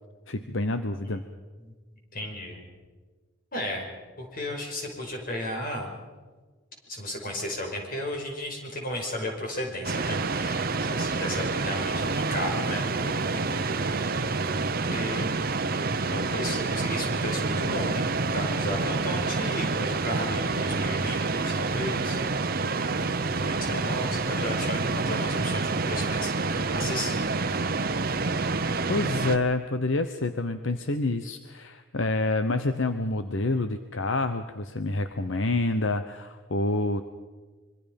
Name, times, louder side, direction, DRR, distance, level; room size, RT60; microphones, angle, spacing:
voice 1, 0.3-1.2 28.9-37.0, left 2 dB, 75° left, 9 dB, 1.0 m, -27 dB
voice 2, 2.1-2.6 3.5-3.9 4.2-5.9 6.9-13.8 14.1-14.4 14.8-15.5 16.1-22.2 23.3-27.6, left 1 dB, 45° left, 1 dB, 5.4 m, -34 dB
sound 1, 9.8-29.4, right 3 dB, 50° right, 0.9 m, -28 dB
26.0 x 24.0 x 5.3 m, 1.4 s
head